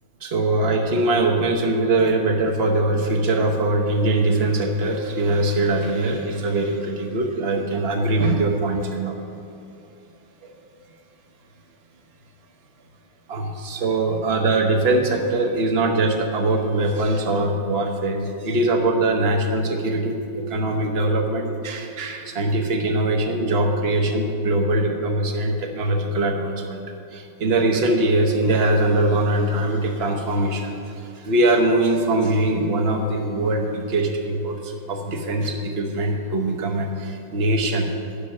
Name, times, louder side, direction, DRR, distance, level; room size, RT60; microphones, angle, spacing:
voice 1, 0.2-9.2 10.4-10.5 13.3-26.8 27.1-37.9, right 2 dB, 50° right, 3 dB, 0.7 m, -22 dB
10.0 x 5.9 x 6.4 m, 2.6 s
omnidirectional pair, 2.2 m